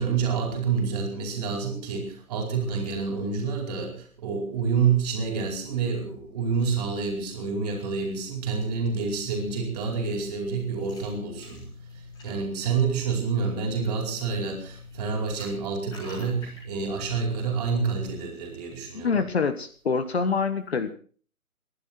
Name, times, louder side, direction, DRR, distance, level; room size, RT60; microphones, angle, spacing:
voice 1, 0.0-11.6 12.2-19.2, right 5 dB, 25° right, 2 dB, 4.8 m, -28 dB
sound 1, 8.2-18.2, left 2 dB, 10° left, 3.8 m, -46 dB
voice 2, 18.9-20.9, left 5 dB, 45° left, 10 dB, 1.6 m, -26 dB
28.0 x 11.5 x 4.4 m, 0.44 s
figure-of-eight pair, 145°, 44 cm